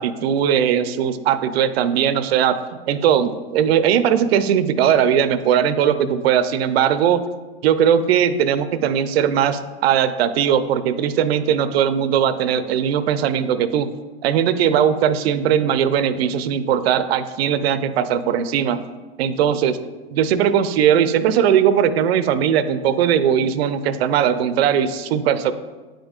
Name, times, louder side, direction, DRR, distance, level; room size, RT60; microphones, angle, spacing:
voice 1, 0.0-2.6 2.9-7.2 7.6-13.9 14.2-18.8 19.2-19.7 20.1-25.5, right 9 dB, 70° right, 12 dB, 0.5 m, -19 dB
8.8 x 5.1 x 2.4 m, 1.3 s
hypercardioid pair, 125°, 32 cm